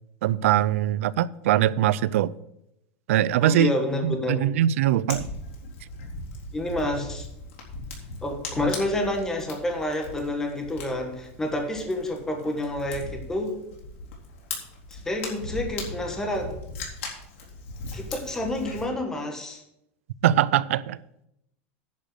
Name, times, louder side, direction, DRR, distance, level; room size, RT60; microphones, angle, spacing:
voice 1, 0.2-2.3 3.1-3.7 4.0-5.3 20.2-21.0, right 12 dB, 90° right, 0.5 m, -22 dB
voice 2, 3.4-4.4 6.5-7.3 8.2-13.5 14.9-16.6 17.9-19.6, left 1 dB, 5° left, 1.3 m, -29 dB
Fire, 5.1-18.8, left 3 dB, 80° left, 3.7 m, -39 dB
10.5 x 5.2 x 7.7 m
supercardioid pair, 175°, 7 cm